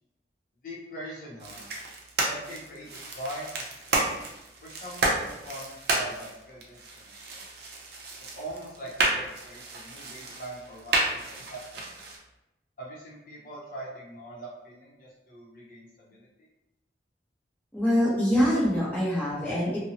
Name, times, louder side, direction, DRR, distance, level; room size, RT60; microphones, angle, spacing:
voice 1, 0.6-1.6 2.2-4.2 4.6-7.4 8.3-11.2 11.5-11.9 12.8-16.5, right 1 dB, 45° left, -6 dB, 0.7 m, -42 dB
sound 1, 1.4-12.2, right 2 dB, 55° right, 0.5 m, -32 dB
voice 2, 17.7-19.8, equal, 10° left, -9 dB, 0.7 m, -24 dB
2.6 x 2.0 x 2.7 m, 0.92 s
head